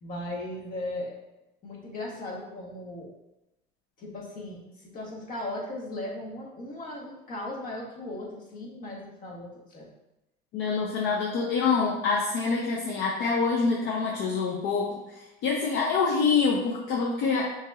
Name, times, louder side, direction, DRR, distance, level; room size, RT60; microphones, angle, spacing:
voice 1, 0.0-1.2 1.6-3.1 4.0-9.9, left 1 dB, 45° left, -2 dB, 1.3 m, -37 dB
voice 2, 10.5-17.5, left 4 dB, 65° left, -1 dB, 0.6 m, -26 dB
5.6 x 2.9 x 2.4 m, 0.94 s
cardioid pair, 135°, 20 cm